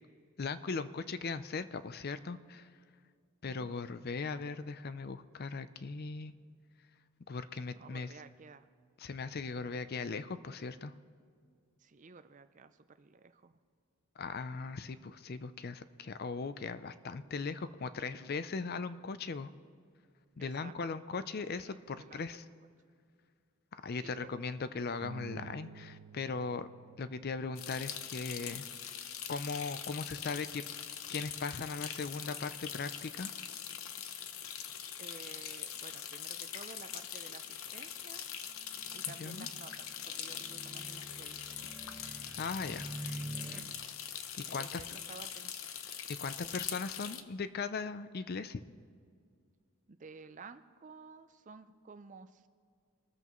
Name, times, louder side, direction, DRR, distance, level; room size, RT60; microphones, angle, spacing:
voice 1, 0.4-2.7 3.4-6.3 7.3-8.1 9.0-10.9 14.2-19.5 20.4-22.4 23.7-26.7 27.0-28.7 29.3-30.6 31.1-33.3 39.1-39.5 42.4-42.9 44.4-44.8 46.1-48.6, left 4 dB, 45° left, 13 dB, 0.5 m, -39 dB
voice 2, 7.8-8.7 11.8-13.6 20.4-21.0 21.5-22.5 24.0-24.3 35.0-38.2 38.9-41.6 44.5-45.5 49.9-52.5, right 4 dB, 35° right, 11 dB, 0.5 m, -53 dB
Bass guitar, 25.0-31.3, right 4 dB, 80° right, 0.7 m, -54 dB
sound 1, 27.6-47.2, left 9 dB, 70° left, 0.8 m, -43 dB
sound 2, 38.6-43.6, right 1 dB, 5° right, 1.3 m, -47 dB
24.5 x 14.0 x 3.1 m, 2.1 s
head